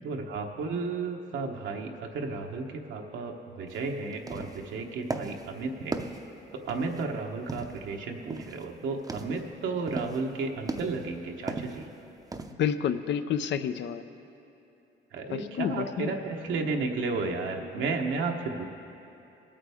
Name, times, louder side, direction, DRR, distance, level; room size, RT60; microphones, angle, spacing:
voice 1, 0.0-6.0 6.7-11.9 15.1-18.7, right 4 dB, 75° right, 2 dB, 1.0 m, -33 dB
sound 1, 3.7-3.8 4.1-4.7 5.1-5.5 5.9-7.1 7.5-7.9 8.3-8.7 9.0-9.4 9.9-10.3 10.7-11.1 11.5-11.9 12.3-12.5, right 3 dB, 20° right, 0.6 m, -37 dB
voice 2, 12.6-14.0 15.3-16.2, left 8 dB, 65° left, 11 dB, 0.6 m, -29 dB
19.0 x 8.7 x 3.5 m, 2.8 s
cardioid pair, 90°, 20 cm